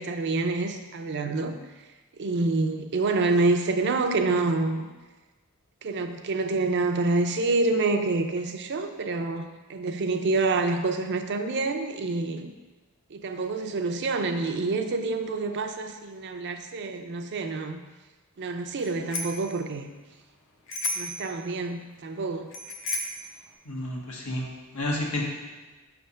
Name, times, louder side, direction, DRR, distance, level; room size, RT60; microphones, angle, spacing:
voice 1, 0.0-1.6 2.2-4.9 5.8-12.5 13.1-17.8 18.4-19.9 21.0-22.5, right 3 dB, 55° right, 6 dB, 0.5 m, -27 dB
Bicycle bell, 18.8-19.5 20.7-21.3 22.5-23.3, left 2 dB, 60° left, 0.8 m, -32 dB
voice 2, 23.6-24.5 24.7-25.2, left 1 dB, 80° left, -1 dB, 1.3 m, -30 dB
6.0 x 3.4 x 5.5 m, 1.2 s
head